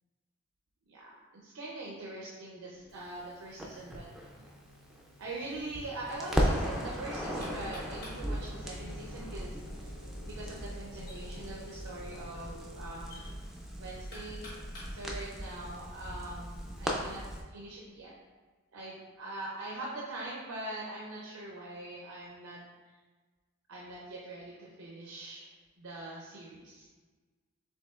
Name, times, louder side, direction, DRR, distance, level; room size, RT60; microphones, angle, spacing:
voice 1, 0.9-4.1 4.4-4.5 5.2-10.0 10.3-13.3 13.8-14.5 14.9-17.2 17.5-18.1 18.7-22.9 23.7-25.4 25.8-26.9, right 2 dB, 85° right, -4 dB, 0.6 m, -43 dB
sound 1, 2.7-13.0, left 1 dB, 80° left, 0.5 m, -53 dB
Crackle, 3.6-5.7 6.1-17.4, equal, ahead, 0.3 m, -37 dB
Knock, 5.5-16.1, left 1 dB, 50° left, 1.5 m, -54 dB
5.2 x 3.5 x 2.3 m, 1.4 s
head